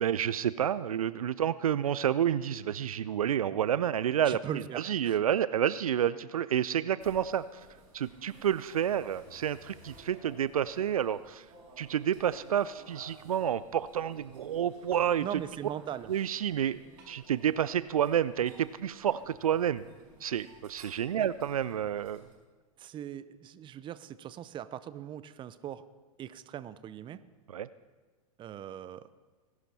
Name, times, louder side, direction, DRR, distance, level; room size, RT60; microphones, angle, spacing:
voice 1, 0.0-7.6 7.9-11.4 11.8-15.3 16.1-16.8 17.1-19.8 20.2-22.2 27.5-27.7, right 9 dB, 75° right, 17 dB, 0.5 m, -29 dB
voice 2, 4.2-5.2 15.2-16.1 21.2-21.3 22.8-25.8 26.2-27.2 28.4-29.1, right 10 dB, 25° right, 16 dB, 0.7 m, -40 dB
sound 1, 7.0-22.3, right 2 dB, 45° right, 5.3 m, -55 dB
20.0 x 11.5 x 4.3 m, 1.4 s
figure-of-eight pair, 95°, 18 cm